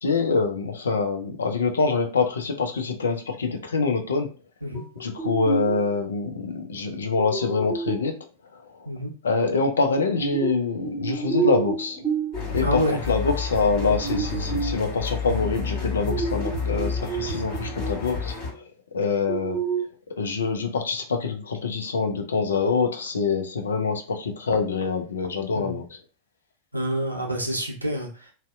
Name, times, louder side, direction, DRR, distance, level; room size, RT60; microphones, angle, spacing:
voice 1, 0.0-4.3 5.0-8.2 8.5-8.6 9.2-12.0 12.5-18.3 18.9-19.6 20.2-25.8, left 4 dB, 70° left, 5 dB, 0.4 m, -25 dB
sound 1, 4.7-5.9 7.2-8.2 10.0-12.6 13.7-14.8 15.7-18.1 18.4-18.5 19.3-19.8, right 5 dB, 5° right, 0.9 m, -30 dB
sound 2, 12.3-18.5, left 5 dB, 45° left, 1.5 m, -30 dB
voice 2, 12.6-13.0 25.5-25.8 26.7-28.3, equal, 85° right, 0 dB, 0.5 m, -27 dB
2.6 x 2.0 x 2.3 m, 0.35 s
figure-of-eight pair, 90°, 0 cm